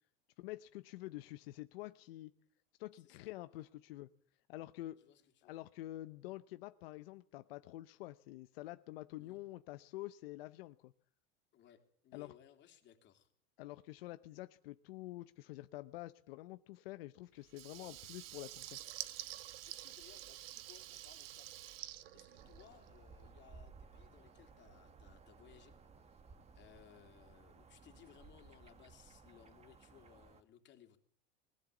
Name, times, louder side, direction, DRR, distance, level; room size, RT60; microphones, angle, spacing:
voice 1, 0.4-2.3 2.8-4.1 4.5-5.0 5.4-10.9 12.1-12.3 13.6-18.8, left 17 dB, 80° left, 12 dB, 0.8 m, -48 dB
voice 2, 2.9-3.7 5.0-5.5 9.2-9.4 11.5-13.3 17.8-17.9 19.6-21.5 22.1-26.2 26.5-31.0, left 10 dB, 40° left, 5 dB, 3.1 m, -63 dB
Water tap faucet / Liquid, 17.5-23.0, right 14 dB, 80° right, 1.5 m, -49 dB
sound 1, 22.4-30.4, right 4 dB, 20° right, 1.7 m, -59 dB
20.5 x 15.5 x 8.3 m, 0.63 s
supercardioid pair, 130°, 29 cm